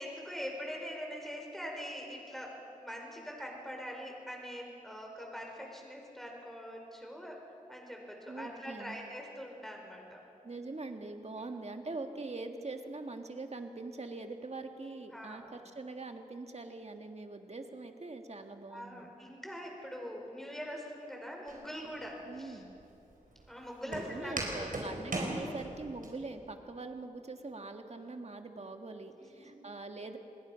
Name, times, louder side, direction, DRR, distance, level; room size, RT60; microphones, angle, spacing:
voice 1, 0.0-7.3 7.7-10.2 15.1-15.5 18.7-22.6 23.5-24.7 25.1-25.2 29.3-29.5, equal, ahead, 0 dB, 5.1 m, -43 dB
voice 2, 8.2-9.0 10.4-19.1 22.3-22.7 23.9-30.2, right 3 dB, 50° right, 5 dB, 1.8 m, -43 dB
Walk footsteps, 21.5-26.1, right 1 dB, 75° right, 4.8 m, -40 dB
27.0 x 20.5 x 5.8 m, 2.8 s
wide cardioid pair, 75°, 14 cm